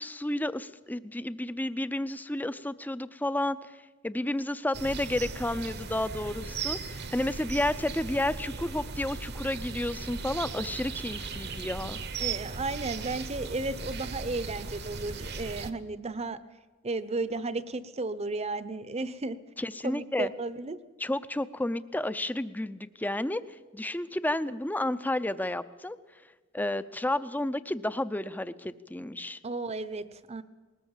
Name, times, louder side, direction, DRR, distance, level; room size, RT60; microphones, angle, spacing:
voice 1, 0.0-3.8 4.0-12.0 19.6-20.3 21.0-26.0 26.5-29.4, left 1 dB, 10° left, 14 dB, 0.6 m, -31 dB
sound 1, 4.7-15.7, right 4 dB, 55° right, 1.2 m, -37 dB
voice 2, 12.2-16.4 16.8-19.4 19.8-20.8 29.4-30.4, right 2 dB, 30° right, 14 dB, 0.8 m, -34 dB
20.0 x 19.0 x 7.3 m, 1.3 s
head